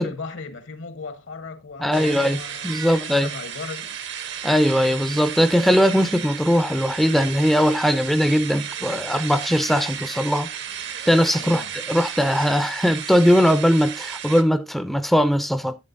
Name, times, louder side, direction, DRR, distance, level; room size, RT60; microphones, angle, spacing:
voice 1, 0.0-4.0 11.4-11.7, left 4 dB, 75° left, 1.1 m, -37 dB
voice 2, 1.8-2.4 2.6-3.3 4.4-10.5 11.1-15.8, equal, ahead, 0.4 m, -20 dB
sound 1, 1.9-14.4, right 8 dB, 65° right, 0.9 m, -34 dB
11.0 x 8.0 x 2.5 m
head